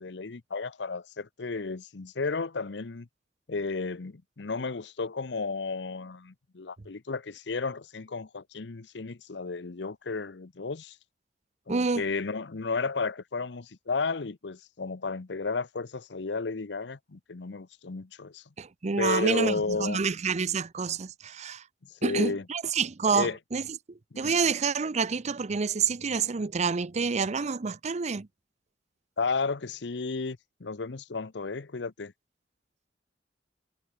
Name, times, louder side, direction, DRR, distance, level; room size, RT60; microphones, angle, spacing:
voice 1, 0.0-3.1 3.5-11.0 11.7-18.4 19.0-20.0 22.0-22.4 23.1-23.4 24.1-24.3 29.2-32.1, left 4 dB, 70° left, 0.8 m, -33 dB
voice 2, 11.7-12.0 18.6-21.6 22.0-28.3, right 5 dB, 40° right, 0.6 m, -28 dB
head